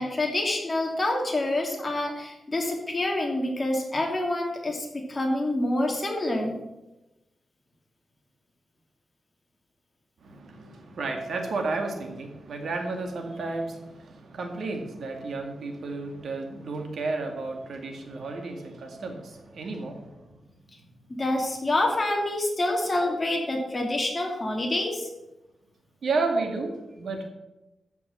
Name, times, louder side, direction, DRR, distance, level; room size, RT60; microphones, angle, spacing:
voice 1, 0.0-6.6 21.1-25.1, left 1 dB, 25° left, 0 dB, 2.8 m, -27 dB
voice 2, 10.2-20.4 26.0-27.3, right 3 dB, 75° right, 3 dB, 2.2 m, -32 dB
13.5 x 6.0 x 7.3 m, 1.0 s
wide cardioid pair, 135°, 0 cm